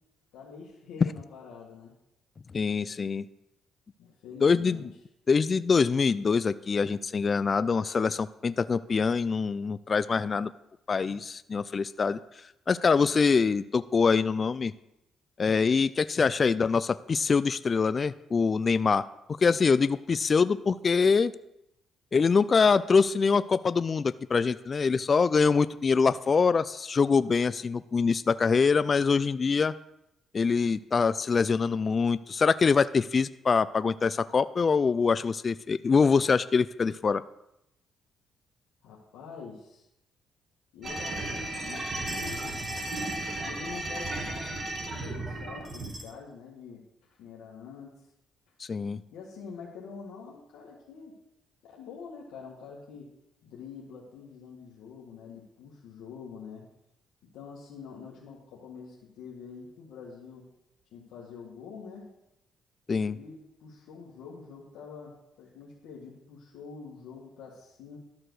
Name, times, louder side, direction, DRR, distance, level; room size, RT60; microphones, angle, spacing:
voice 1, 0.3-1.9 2.8-3.1 4.0-4.9 38.8-39.9 40.7-42.6 43.4-46.8 47.2-48.1 49.1-51.2 51.6-53.1 53.4-56.7 57.3-60.5 60.9-62.1 63.0-68.0, left 5 dB, 85° left, -4 dB, 1.8 m, -45 dB
voice 2, 2.5-3.3 4.4-4.8 5.3-10.5 10.9-12.2 12.7-14.7 15.4-19.0 19.4-21.3 22.1-29.7 30.3-37.2 48.6-49.0 62.9-63.2, left 5 dB, 40° left, 15 dB, 0.3 m, -24 dB
sound 1, 40.8-46.0, right 2 dB, 35° right, 2.2 m, -34 dB
12.0 x 4.8 x 6.3 m, 0.85 s
cardioid pair, 90°, 0 cm